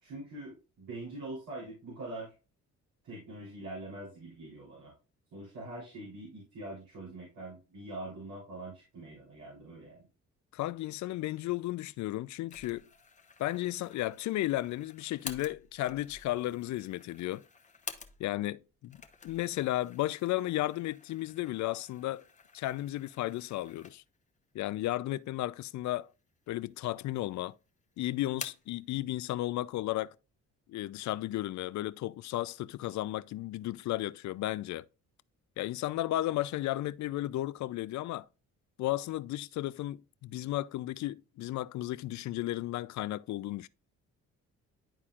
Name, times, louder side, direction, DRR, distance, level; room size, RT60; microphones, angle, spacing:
voice 1, 0.0-2.3 3.0-4.9 5.3-10.0, right 2 dB, 80° right, 3.4 m, -43 dB
voice 2, 10.5-12.9 13.4-17.4 18.2-19.0 19.2-22.2 22.5-24.0 24.5-26.1 26.5-27.6 28.0-30.1 30.7-34.8 35.6-38.3 38.8-43.7, left 15 dB, 70° left, 0.4 m, -34 dB
sound 1, 12.5-18.5 18.8-24.3 24.7-24.8 25.6-26.3 26.6-27.4 27.7-28.8, left 5 dB, 25° left, 0.9 m, -49 dB
11.0 x 4.2 x 2.4 m
cardioid pair, 90°, 30 cm